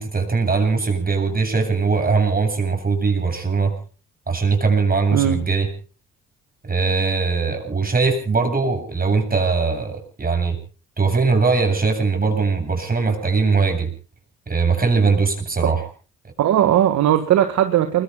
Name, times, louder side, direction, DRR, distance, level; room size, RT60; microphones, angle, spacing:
voice 1, 0.0-3.7 4.3-5.7 6.7-10.6 11.0-13.9 14.5-15.8, right 4 dB, 30° right, 5 dB, 7.7 m, -20 dB
voice 2, 16.4-18.0, right 11 dB, 70° right, 9 dB, 1.6 m, -18 dB
29.5 x 21.5 x 2.3 m, 0.37 s
supercardioid pair, 60°, 29 cm